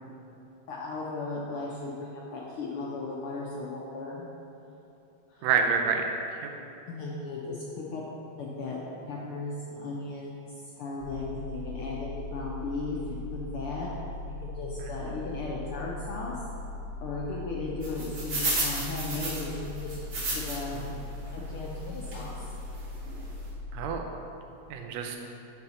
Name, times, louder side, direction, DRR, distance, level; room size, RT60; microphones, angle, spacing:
voice 1, 0.7-4.2 5.3-5.5 6.9-8.0 8.4-8.8 9.1-13.9 14.4-16.4 17.0-20.1 20.3-20.9 21.3-22.4, left 3 dB, 85° left, -4 dB, 1.2 m, -36 dB
voice 2, 5.4-6.1 6.4-6.5 20.7-20.9 23.7-24.0 24.7-25.2, right 6 dB, 75° right, 3 dB, 1.8 m, -27 dB
sound 1, 11.0-24.0, left 2 dB, 60° right, 2.0 m, -39 dB
sound 2, 17.8-20.8 21.3-21.4 22.1-22.3 22.8-22.9 23.1-23.2, right 2 dB, 45° right, 1.7 m, -32 dB
8.2 x 5.5 x 4.3 m, 2.9 s
omnidirectional pair, 3.3 m